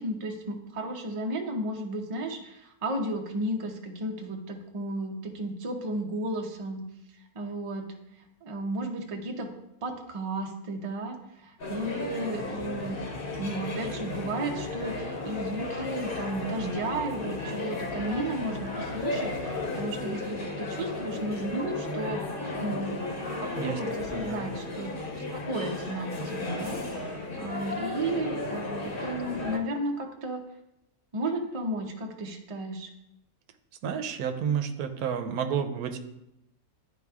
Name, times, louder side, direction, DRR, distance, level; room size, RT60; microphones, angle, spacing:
voice 1, 0.0-6.8 7.3-7.9 8.4-9.5 9.8-13.0 13.4-22.2 22.6-22.9 23.4-30.4 31.1-32.9, right 1 dB, 40° right, 3 dB, 0.4 m, -33 dB
sound 1, 11.6-29.6, left 2 dB, 40° left, 1.0 m, -34 dB
sound 2, 12.4-20.2, left 5 dB, 85° left, 1.2 m, -45 dB
voice 2, 24.1-24.5 33.8-36.0, right 7 dB, 85° right, 7 dB, 1.1 m, -30 dB
11.0 x 4.1 x 2.4 m, 0.85 s
omnidirectional pair, 1.6 m